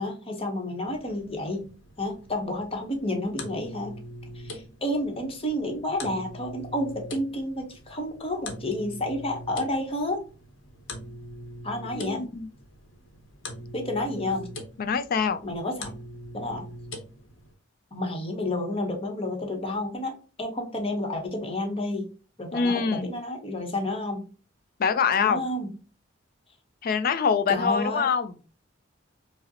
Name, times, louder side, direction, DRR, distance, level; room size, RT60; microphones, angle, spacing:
voice 1, 0.0-1.7 2.0-4.0 4.3-10.2 11.6-12.2 13.7-14.5 15.4-15.9 16.3-16.7 17.9-22.1 22.4-24.3 25.2-25.7 27.5-28.1, left 1 dB, 30° left, 2 dB, 0.9 m, -30 dB
sound 1, 0.8-17.5, left 1 dB, 75° left, 0.8 m, -43 dB
voice 2, 11.9-12.5 14.8-15.4 22.5-23.1 24.8-25.4 26.8-28.3, left 6 dB, 50° left, 12 dB, 0.4 m, -24 dB
4.9 x 2.0 x 2.7 m, 0.36 s
head